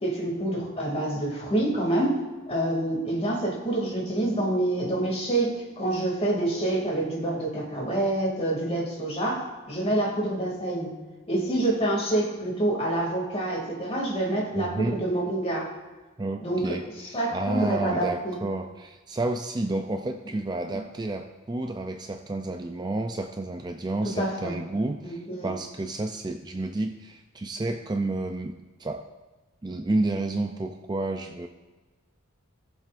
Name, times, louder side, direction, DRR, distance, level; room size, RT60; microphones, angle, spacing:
voice 1, 0.0-2.2 2.5-10.9 11.3-15.7 16.4-16.8 17.1-18.4 24.0-24.5 25.0-25.5, right 1 dB, 30° left, -2 dB, 2.5 m, -27 dB
voice 2, 14.5-15.0 16.2-29.0 29.6-31.5, right 2 dB, 20° right, 5 dB, 0.4 m, -30 dB
18.0 x 7.3 x 2.5 m, 1.3 s
head